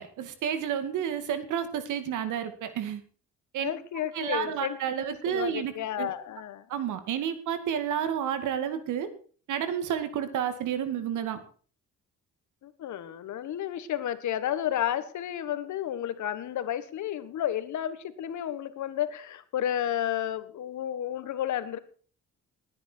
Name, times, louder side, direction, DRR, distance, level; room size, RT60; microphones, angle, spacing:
voice 1, 0.0-3.0 3.5-3.7 4.1-5.7 6.0-6.1 6.7-9.1 9.5-11.4, right 9 dB, 85° right, 10 dB, 2.3 m, -30 dB
voice 2, 3.6-4.8 5.3-6.6 12.6-21.8, left 11 dB, 70° left, 12 dB, 1.6 m, -32 dB
19.5 x 9.7 x 4.6 m, 0.41 s
cardioid pair, 90°, 30 cm